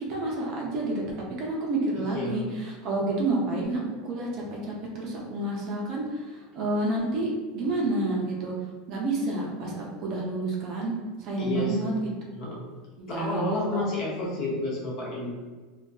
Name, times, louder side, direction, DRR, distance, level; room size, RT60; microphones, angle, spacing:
voice 1, 0.1-1.0 1.4-2.4 2.8-8.5 8.9-10.9 11.2-11.9 13.0-13.4 13.7-13.8, right 2 dB, 40° right, -2 dB, 0.5 m, -29 dB
voice 2, 2.0-2.4 11.3-12.0 12.3-12.6 13.1-15.3, left 2 dB, 40° left, -4 dB, 0.6 m, -30 dB
2.5 x 2.2 x 2.3 m, 1.3 s
supercardioid pair, 165°, 0 cm